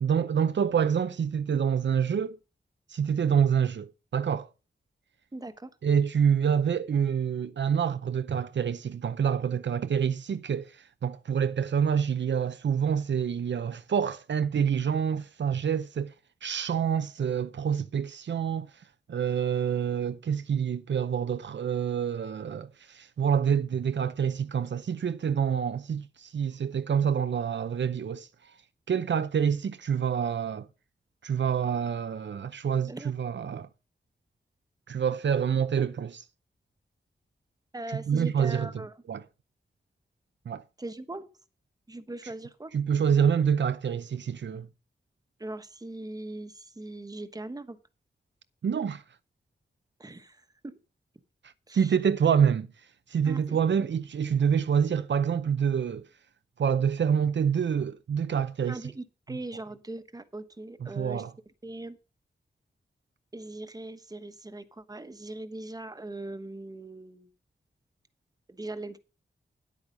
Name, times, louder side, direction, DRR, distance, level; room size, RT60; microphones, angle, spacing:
voice 1, 0.0-2.4 2.9-4.5 5.8-16.1 16.4-18.7 19.1-28.3 28.9-30.7 31.2-33.7 34.9-36.2 37.9-38.7 39.1-39.2 40.5-40.6 42.7-44.7 48.6-49.0 51.7-52.7 53.1-56.1 56.6-58.8 60.8-61.3, right 7 dB, 75° right, 0.6 m, -27 dB
voice 2, 5.3-5.7 32.9-33.1 37.7-39.0 40.8-41.3 41.9-42.7 45.4-47.8 50.0-50.7 51.7-52.0 53.2-53.6 58.7-61.2 61.6-62.0 63.3-67.3 68.5-69.0, right 2 dB, 20° right, 1.1 m, -40 dB
10.5 x 8.4 x 5.3 m
wide cardioid pair, 110°, 19 cm